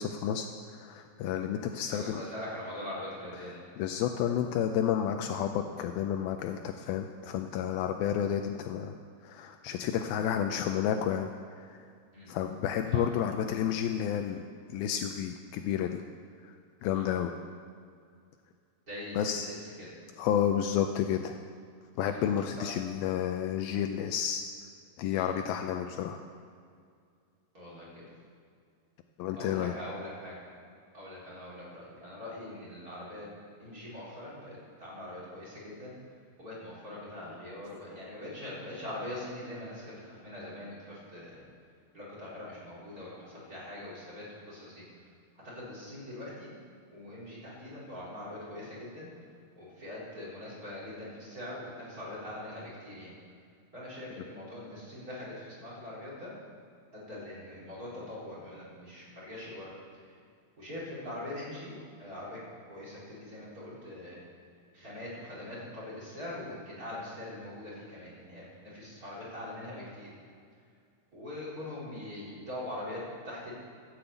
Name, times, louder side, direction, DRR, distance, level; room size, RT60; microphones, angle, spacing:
voice 1, 0.0-2.2 3.4-9.0 9.2-11.9 12.3-16.0 16.4-16.6 16.8-17.3 19.2-19.5 20.2-21.4 22.0-24.4 25.0-26.2 29.2-29.8, left 9 dB, 80° left, 6 dB, 2.3 m, -31 dB
voice 2, 1.8-3.6 12.1-12.3 12.9-13.0 16.9-17.0 18.9-19.9 22.1-22.2 22.6-22.7 25.2-25.3 27.5-28.1 29.4-30.4 30.9-35.9 36.4-41.4 41.9-44.8 45.4-46.5 46.9-49.1 49.6-53.1 53.7-56.3 56.9-59.7 60.6-62.4 62.7-64.2 64.7-70.1 71.1-73.5, left 1 dB, 25° right, -7 dB, 3.9 m, -42 dB
13.5 x 7.9 x 8.1 m, 2.2 s
omnidirectional pair, 4.5 m